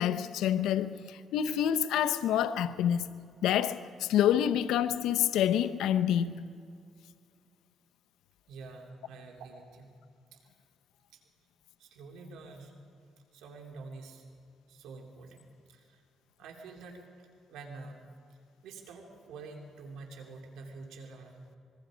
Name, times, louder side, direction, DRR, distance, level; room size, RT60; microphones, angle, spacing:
voice 1, 0.0-3.1 3.4-6.4, left 10 dB, 85° left, 0.7 m, -27 dB
voice 2, 8.5-9.9 10.3-10.4 11.1-11.2 11.8-12.7 13.3-14.2 14.7-16.0 16.4-17.0 17.5-18.0 18.2-18.4 18.6-21.6, right 3 dB, 85° right, 3.1 m, -47 dB
25.5 x 22.5 x 5.1 m
cardioid pair, 90°, 0 cm